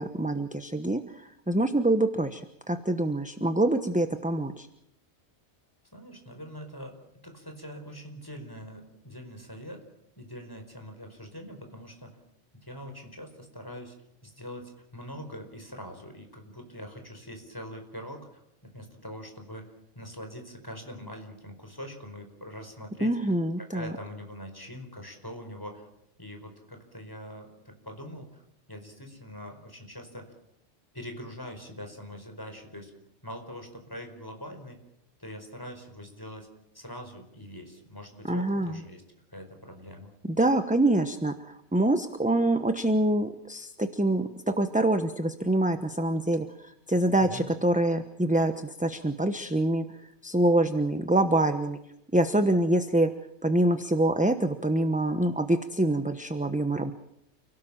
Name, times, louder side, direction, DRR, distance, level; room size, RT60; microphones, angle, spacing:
voice 1, 0.0-4.7 23.0-23.9 38.2-38.8 40.2-49.8 50.2-51.8 52.1-53.1 53.4-56.9, right 1 dB, 5° right, 8 dB, 1.0 m, -25 dB
voice 2, 5.9-7.0 7.2-9.8 10.1-12.2 12.6-13.9 14.2-23.1 23.6-25.9 26.2-28.4 28.7-30.3 30.9-32.9 33.2-34.8 35.2-39.0 39.3-40.1 47.2-47.5, equal, 15° left, 4 dB, 4.8 m, -43 dB
29.5 x 17.5 x 7.4 m, 0.80 s
omnidirectional pair, 1.3 m